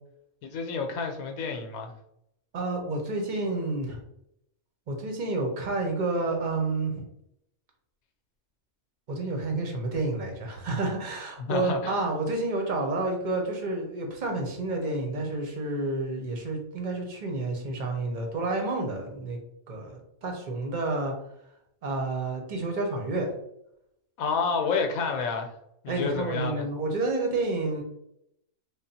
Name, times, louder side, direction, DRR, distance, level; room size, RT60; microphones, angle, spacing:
voice 1, 0.4-1.9 11.4-12.1 24.2-25.5 25.8-26.7, left 5 dB, 85° left, 5 dB, 1.1 m, -29 dB
voice 2, 2.5-4.0 4.9-7.0 9.1-19.4 19.7-21.1 21.8-23.3 25.9-27.8, right 2 dB, 40° right, 2 dB, 0.8 m, -30 dB
3.5 x 2.2 x 4.1 m, 0.78 s
omnidirectional pair, 1.5 m